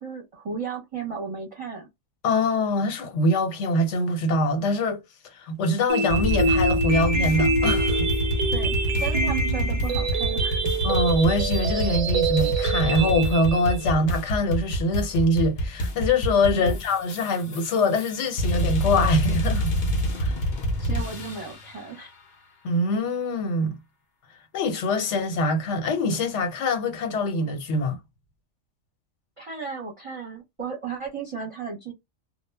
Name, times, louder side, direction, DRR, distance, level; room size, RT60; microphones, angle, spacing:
voice 1, 0.0-1.9 8.5-10.6 16.5-16.8 20.8-22.1 29.4-31.9, right 5 dB, 30° right, 0.7 m, -34 dB
voice 2, 2.2-5.0 5.3-8.1 10.8-19.7 20.2-20.4 22.6-23.8 24.5-28.0, left 1 dB, 75° left, 1.0 m, -24 dB
sound 1, 5.9-13.9, right 3 dB, 55° right, 0.4 m, -26 dB
sound 2, 6.1-21.7, equal, 50° left, 0.6 m, -27 dB
2.1 x 2.0 x 3.2 m
omnidirectional pair, 1.2 m